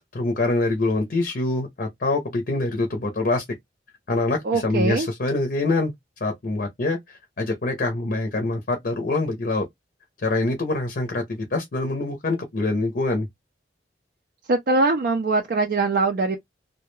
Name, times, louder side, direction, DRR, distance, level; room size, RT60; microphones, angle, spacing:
voice 1, 0.0-3.4 4.1-5.9 6.2-9.7 10.2-13.3, left 2 dB, 50° left, 0.6 m, -25 dB
voice 2, 4.4-5.1 14.5-16.4, right 3 dB, 50° right, 0.4 m, -22 dB
2.2 x 2.1 x 3.0 m
head